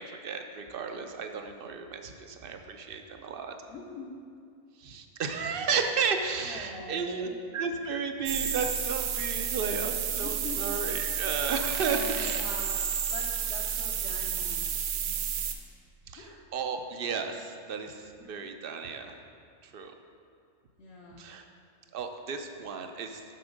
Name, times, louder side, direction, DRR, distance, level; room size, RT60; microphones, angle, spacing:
voice 1, 0.0-3.5 4.8-12.4 16.1-19.2 19.6-19.9 21.1-21.4 21.9-23.4, right 5 dB, 60° right, 6 dB, 0.6 m, -33 dB
voice 2, 3.7-4.2 6.4-7.4 10.2-10.7 11.9-14.8 15.1-15.5 16.2-16.4 18.2-18.4 20.8-21.3, left 2 dB, 60° left, -3 dB, 1.0 m, -43 dB
sound 1, 8.3-15.5, right 8 dB, 85° right, 1.0 m, -31 dB
6.9 x 6.2 x 5.1 m, 2.4 s
omnidirectional pair, 1.3 m